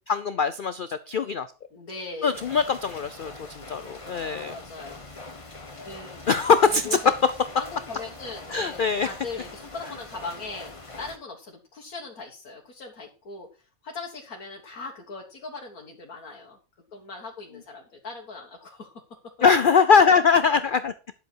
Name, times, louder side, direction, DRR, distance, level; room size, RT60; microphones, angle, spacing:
voice 1, 0.1-1.5 2.2-4.6 6.3-7.1 8.5-9.1 19.4-20.9, left 5 dB, 55° left, 13 dB, 0.6 m, -21 dB
voice 2, 1.7-2.4 4.2-5.3 5.8-6.2 6.6-7.1 7.6-16.6 16.9-18.9, left 4 dB, 90° left, 0 dB, 2.1 m, -39 dB
sound 1, 2.3-11.2, left 2 dB, 25° left, 1.4 m, -43 dB
11.0 x 7.9 x 4.6 m, 0.35 s
omnidirectional pair, 1.5 m